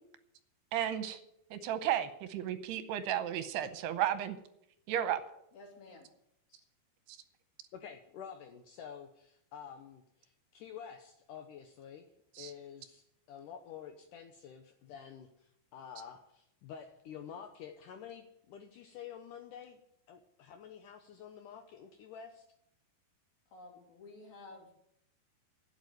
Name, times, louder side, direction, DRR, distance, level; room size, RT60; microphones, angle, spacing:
voice 1, 0.7-1.2 1.5-4.4 4.9-5.2 12.4-12.5, right 11 dB, 80° right, 11 dB, 2.7 m, -33 dB
voice 2, 5.5-6.1 23.5-24.7, left 2 dB, 60° left, 0 dB, 4.7 m, -52 dB
voice 3, 7.7-12.1 12.4-19.8 20.1-22.5, left 8 dB, 85° left, 6 dB, 1.8 m, -49 dB
12.0 x 7.9 x 9.4 m, 0.77 s
omnidirectional pair, 4.9 m